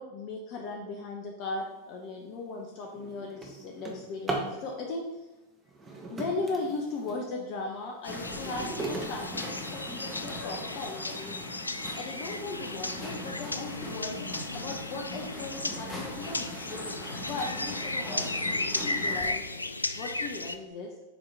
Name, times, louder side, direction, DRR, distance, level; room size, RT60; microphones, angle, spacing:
voice 1, 0.0-5.1 6.1-11.4 12.0-16.5 17.2-18.3 18.7-19.6 19.9-20.9, left 3 dB, 40° left, 1 dB, 0.8 m, -37 dB
Drawer open or close, 1.9-2.1 2.6-4.6 5.6-7.3 7.8-10.2 10.9-11.0 11.5-11.6 11.9-12.3, right 2 dB, 15° right, 1.2 m, -38 dB
sound 1, 8.0-20.6, left 2 dB, 80° left, 0.3 m, -35 dB
sound 2, 8.1-19.3, left 1 dB, 10° left, 1.9 m, -41 dB
7.3 x 4.7 x 3.5 m, 1.0 s
figure-of-eight pair, 90°, 0 cm